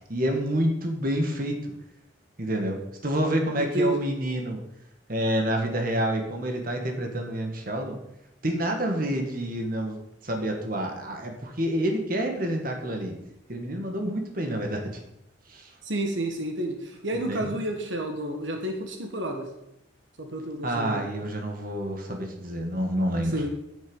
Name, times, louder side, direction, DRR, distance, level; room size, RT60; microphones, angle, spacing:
voice 1, 0.1-1.6 2.4-4.6 5.1-8.0 8.4-10.0 10.2-13.1 13.5-14.8 15.5-15.7 17.3-17.5 20.6-23.4, right 1 dB, 50° right, 3 dB, 1.8 m, -28 dB
voice 2, 3.5-4.0 15.8-19.5 20.2-21.1 23.3-23.5, right 1 dB, 80° right, 4 dB, 1.6 m, -30 dB
10.0 x 9.1 x 5.5 m, 0.81 s
head